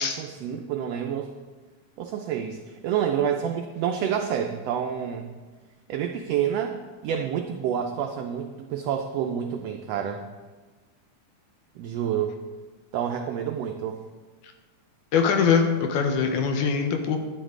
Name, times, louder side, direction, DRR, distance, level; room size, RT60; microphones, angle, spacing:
voice 1, 0.0-1.3 2.0-5.3 5.9-10.2 11.8-12.3 12.9-14.0, right 8 dB, 80° right, 4 dB, 1.4 m, -28 dB
voice 2, 15.1-17.2, left 6 dB, 80° left, 5 dB, 2.3 m, -22 dB
11.0 x 9.4 x 3.7 m, 1.3 s
omnidirectional pair, 3.5 m